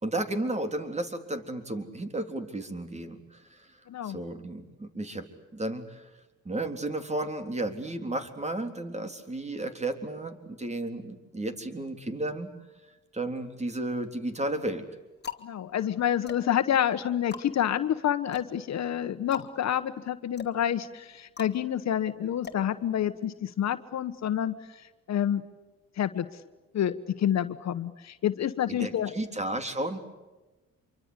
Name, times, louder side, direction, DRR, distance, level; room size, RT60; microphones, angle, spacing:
voice 1, 0.0-3.7 4.0-5.3 5.5-6.1 6.5-12.6 13.1-14.8 28.7-30.0, right 1 dB, 20° right, 8 dB, 3.8 m, -33 dB
voice 2, 3.9-4.2 15.4-25.4 26.0-26.3 26.7-29.1, left 10 dB, 60° left, 11 dB, 1.3 m, -28 dB
sound 1, 13.3-14.0 14.7-23.4, left 7 dB, 35° left, 2.6 m, -45 dB
27.0 x 24.0 x 8.3 m, 1.1 s
cardioid pair, 90°, 30 cm